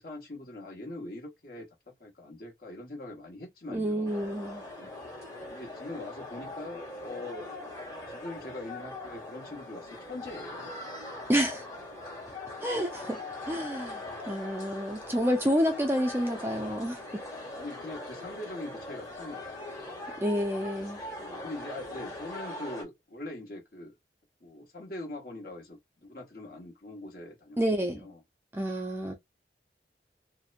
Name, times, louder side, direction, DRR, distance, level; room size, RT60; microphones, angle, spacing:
voice 1, 0.0-4.1 5.5-7.5 8.1-10.7 17.5-19.5 21.2-23.9 24.4-27.6 27.9-28.2, left 2 dB, 55° left, 1.1 m, -42 dB
voice 2, 3.7-4.6 11.3-11.7 12.6-13.2 13.5-17.2 20.2-21.0 27.6-28.1 28.5-29.1, equal, 15° right, 0.4 m, -29 dB
sound 1, 4.0-22.8, left 2 dB, 20° left, 1.1 m, -41 dB
2.8 x 2.1 x 2.5 m
head